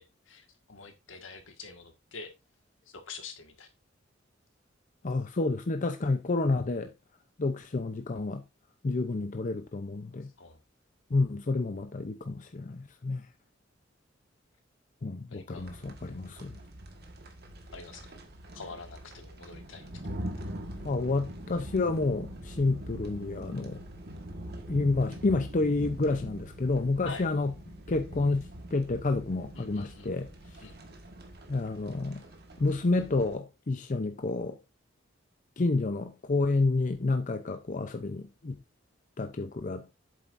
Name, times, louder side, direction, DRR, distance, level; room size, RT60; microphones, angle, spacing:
voice 1, 0.0-2.3 2.9-3.7 10.4-10.6 15.3-15.7 17.7-18.1 18.5-20.1 27.0-27.3 29.5-30.1 30.6-30.8, left 4 dB, 80° left, 1.7 m, -46 dB
voice 2, 5.0-6.9 7.4-8.4 8.8-10.3 11.1-13.2 15.0-16.5 20.8-23.8 24.7-27.5 27.9-30.3 31.5-32.2 32.6-34.6 35.6-38.5 39.2-40.0, left 3 dB, 40° left, 0.6 m, -29 dB
sound 1, 15.6-33.3, equal, 55° right, 1.5 m, -43 dB
8.3 x 7.4 x 2.6 m
head